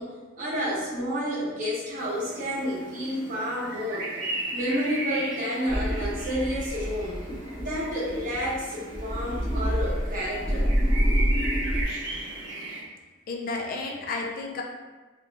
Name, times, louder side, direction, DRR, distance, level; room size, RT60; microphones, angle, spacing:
voice 1, 0.0-4.1 4.5-7.2 7.5-10.7, equal, 40° right, -7 dB, 1.0 m, -30 dB
sound 1, 2.0-12.8, right 2 dB, 70° right, 0.8 m, -36 dB
sound 2, 5.7-11.8, equal, 15° left, 0.8 m, -27 dB
voice 2, 13.3-14.6, left 3 dB, 45° left, 0 dB, 0.4 m, -32 dB
2.7 x 2.2 x 3.9 m, 1.3 s
head